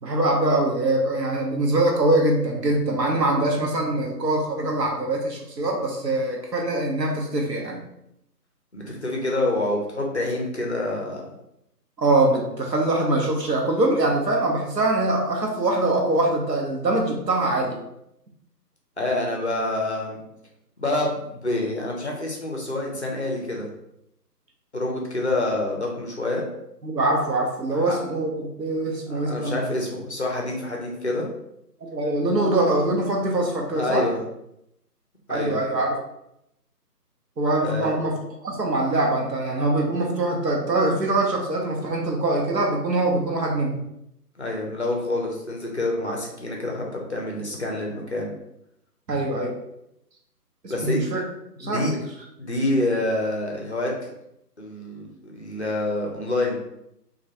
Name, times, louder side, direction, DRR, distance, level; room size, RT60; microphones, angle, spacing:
voice 1, 0.0-7.8 12.0-17.8 26.8-29.6 31.8-34.0 35.3-36.0 37.4-38.2 38.4-43.8 49.1-49.5 50.6-51.2 51.6-52.0, right 2 dB, 85° right, 0 dB, 0.8 m, -23 dB
voice 2, 8.7-11.3 19.0-20.2 20.8-23.7 24.7-26.5 27.7-28.0 29.1-31.2 33.7-34.2 35.3-35.6 37.6-38.0 44.4-48.3 50.7-51.0 51.6-51.9 52.4-54.1 54.6-56.6, left 2 dB, 45° left, -1 dB, 0.5 m, -27 dB
2.3 x 2.2 x 2.8 m, 0.81 s
figure-of-eight pair, 155°, 49 cm